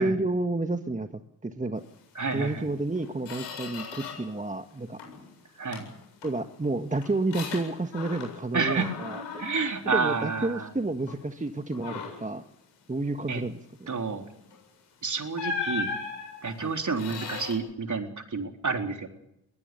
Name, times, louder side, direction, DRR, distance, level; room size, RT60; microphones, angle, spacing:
voice 1, 0.0-1.8 2.3-5.0 6.2-9.2 9.8-12.4 12.9-13.6 16.6-16.7, right 2 dB, 15° right, 7 dB, 1.6 m, -30 dB
voice 2, 2.2-2.7 5.6-5.9 8.5-8.9 9.4-10.7 13.3-13.4 13.9-14.2 15.0-15.9 16.4-19.1, right 4 dB, 40° right, 4 dB, 4.0 m, -29 dB
Squeak, 2.4-2.6 3.0-4.4 4.7-5.3 5.7-8.5 8.8-10.6 11.1-11.3 11.7-12.3 14.5-14.6 15.3-17.6, left 5 dB, 70° left, 7.9 m, -38 dB
22.5 x 18.5 x 7.0 m, 0.81 s
hypercardioid pair, 45°, 45 cm